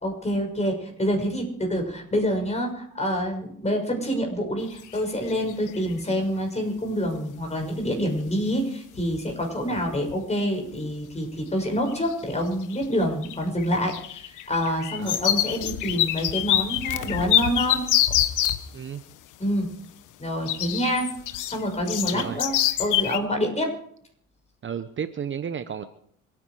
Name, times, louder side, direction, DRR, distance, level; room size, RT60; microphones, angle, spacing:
voice 1, 0.0-17.8 19.4-19.7 20.2-21.1 21.5-22.5 22.8-23.7, equal, 20° left, 2 dB, 6.3 m, -27 dB
sound 1, 4.8-5.0 5.3-5.9 7.9-8.0 8.6-8.7 8.9-9.3 9.6-10.2 10.7-10.8 11.9-12.3 12.6-18.6 20.5-23.2, left 12 dB, 75° left, 1.2 m, -25 dB
voice 2, 22.1-22.4 24.6-25.8, right 7 dB, 40° right, 11 dB, 1.0 m, -33 dB
27.0 x 9.8 x 5.0 m, 0.64 s
supercardioid pair, 85°, 31 cm